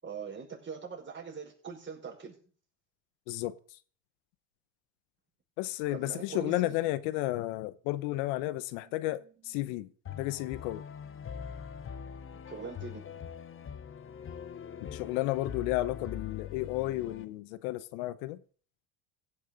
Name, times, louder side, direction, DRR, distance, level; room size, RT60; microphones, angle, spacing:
voice 1, 0.0-2.4 5.9-6.7 8.7-9.3 9.6-9.8 12.3-13.0, right 6 dB, 30° right, 5.6 m, -43 dB
voice 2, 3.3-3.6 5.6-9.9 10.2-10.8 14.9-18.4, left 16 dB, 80° left, 0.9 m, -32 dB
sound 1, 10.0-17.2, left 8 dB, 30° left, 1.1 m, -42 dB
16.0 x 6.7 x 5.2 m
supercardioid pair, 95°, 39 cm